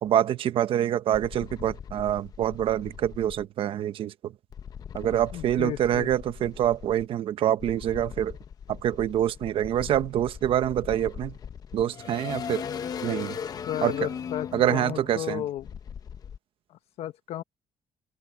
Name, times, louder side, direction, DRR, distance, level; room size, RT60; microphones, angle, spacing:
voice 1, 0.0-4.3 4.9-8.4 8.7-11.3 11.7-12.6 13.0-13.4 13.8-14.1 14.5-15.4, right 11 dB, 55° right, 1.1 m, -26 dB
sound 1, 1.1-3.4 4.5-7.1 7.6-16.4, left 7 dB, 35° left, 0.8 m, -39 dB
voice 2, 5.3-6.1 13.7-15.7 16.7-17.4, left 12 dB, 70° left, 1.2 m, -33 dB
open air
cardioid pair, 175°, 11 cm